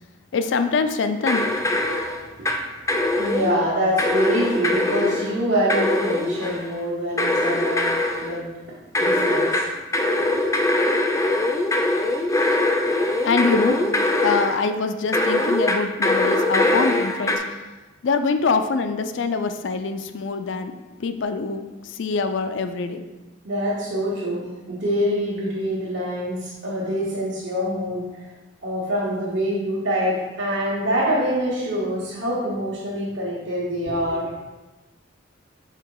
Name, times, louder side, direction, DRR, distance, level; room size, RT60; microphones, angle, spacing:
voice 1, 0.3-1.5 13.2-13.9 14.2-17.6 18.0-23.0, left 4 dB, 70° left, 9 dB, 0.4 m, -24 dB
sound 1, 1.2-2.6 2.9-3.6 4.0-5.3 5.7-6.7 7.2-8.3 8.9-14.6 15.1-17.4, left 2 dB, 15° left, 0.5 m, -22 dB
voice 2, 1.9-9.7 12.2-12.6 23.4-28.3 28.6-34.3, equal, 70° right, -8 dB, 1.4 m, -25 dB
5.7 x 3.8 x 4.7 m, 1.1 s
head